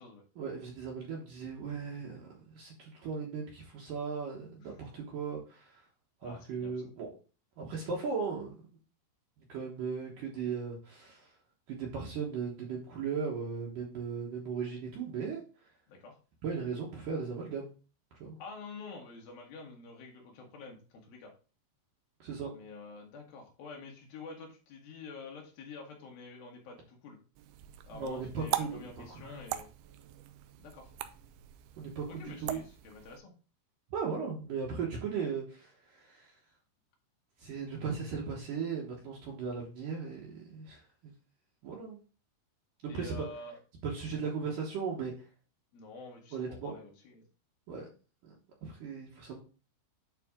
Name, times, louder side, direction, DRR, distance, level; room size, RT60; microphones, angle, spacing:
voice 1, 0.4-5.8 6.2-7.1 7.6-8.5 9.5-11.3 11.7-15.4 16.4-17.7 18.2-18.4 22.2-22.5 27.9-29.4 31.8-32.6 33.9-36.3 37.4-41.1 41.6-42.0 42.8-43.1 43.8-45.1 46.3-46.8 47.7-47.9 48.2-48.3 48.6-49.4, right 5 dB, 65° right, -2 dB, 2.7 m, -37 dB
voice 2, 4.6-5.0 6.2-6.8 15.9-16.2 18.4-21.3 22.5-27.2 27.8-29.7 30.6-30.9 32.1-33.3 42.9-43.6 45.7-47.2, left 4 dB, 70° left, 0 dB, 3.4 m, -48 dB
sound 1, 27.4-33.2, right 13 dB, 90° right, 2.7 m, -41 dB
9.1 x 4.2 x 3.7 m, 0.35 s
omnidirectional pair, 4.5 m